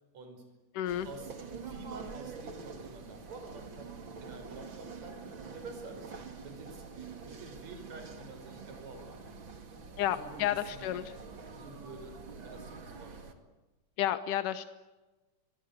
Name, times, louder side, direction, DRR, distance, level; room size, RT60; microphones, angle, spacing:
voice 1, 0.1-0.4 1.0-3.9 4.2-6.1 6.4-9.2 10.1-11.1 11.5-13.4, right 3 dB, 55° right, 5 dB, 6.5 m, -49 dB
voice 2, 0.8-1.1 10.0-11.0 14.0-14.7, left 11 dB, 85° left, 11 dB, 2.6 m, -31 dB
sound 1, 0.9-13.3, right 5 dB, 40° right, 2.8 m, -46 dB
26.0 x 23.5 x 8.2 m, 1.1 s
omnidirectional pair, 3.7 m